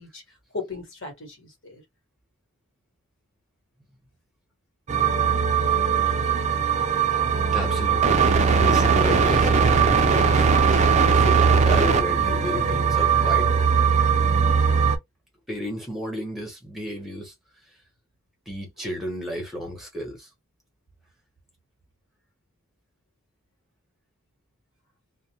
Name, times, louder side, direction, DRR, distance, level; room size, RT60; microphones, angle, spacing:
voice 1, 0.0-1.8 10.7-11.2 11.6-11.8, left 4 dB, 60° left, 1.3 m, -38 dB
sound 1, 4.9-15.0, right 6 dB, 30° right, 0.4 m, -20 dB
voice 2, 7.5-13.6 15.5-17.3 17.6-17.8 18.5-20.3, equal, ahead, 0.9 m, -33 dB
2.4 x 2.1 x 2.8 m
head